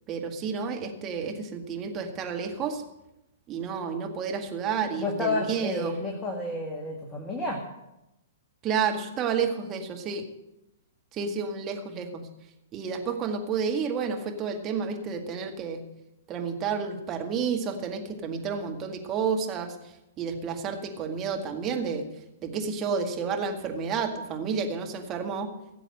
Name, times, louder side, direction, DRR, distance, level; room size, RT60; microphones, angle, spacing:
voice 1, 0.1-2.8 3.5-6.0 8.6-10.2 11.1-12.3 12.7-15.8 16.3-19.8 20.2-22.1 22.4-25.5, right 6 dB, 25° right, 3 dB, 2.0 m, -30 dB
voice 2, 5.0-7.6, left 2 dB, 10° left, -1 dB, 2.0 m, -30 dB
16.5 x 7.6 x 7.8 m, 0.90 s
figure-of-eight pair, 110°, 0 cm